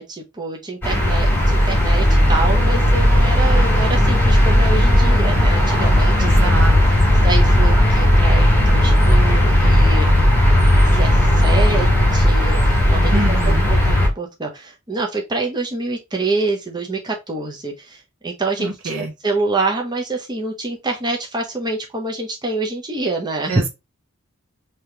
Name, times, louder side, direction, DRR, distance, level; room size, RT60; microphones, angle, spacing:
voice 1, 0.0-6.5 6.9-10.1 10.8-23.6, right 3 dB, 20° right, 0.7 m, -26 dB
sound 1, 0.8-14.1, left 1 dB, 10° left, 1.6 m, -15 dB
voice 2, 6.2-7.1 13.1-13.7 18.6-19.1 23.5-23.7, right 3 dB, 70° right, 1.0 m, -26 dB
3.4 x 2.9 x 3.3 m
head